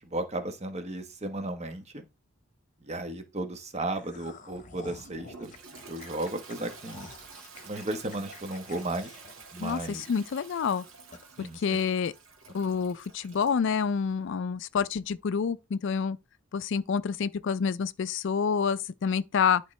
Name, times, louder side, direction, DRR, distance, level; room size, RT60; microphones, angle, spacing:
voice 1, 0.0-2.0 2.8-5.5 5.9-7.1 7.6-9.1 9.5-10.1 11.4-11.8, right 2 dB, 35° right, 1.1 m, -34 dB
sound 1, 3.9-10.2 10.6-10.7 11.1-11.3, left 4 dB, 40° left, 0.9 m, -50 dB
Toilet flush, 5.0-13.6, right 4 dB, 75° right, 1.8 m, -49 dB
voice 2, 9.6-10.8 11.4-12.1 12.5-16.2 16.5-19.6, left 6 dB, 60° left, 0.4 m, -28 dB
11.0 x 3.7 x 3.2 m
head